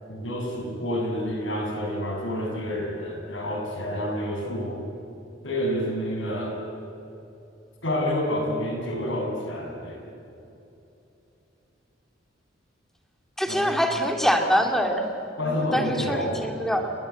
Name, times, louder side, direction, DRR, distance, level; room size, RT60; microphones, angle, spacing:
voice 1, 0.1-4.8 5.4-6.6 7.8-10.1 13.5-13.8 15.4-16.5, left 1 dB, 80° left, 0 dB, 7.5 m, -29 dB
voice 2, 13.4-15.0 15.4-16.9, equal, ahead, 3 dB, 2.6 m, -24 dB
29.5 x 20.5 x 8.5 m, 2.8 s
head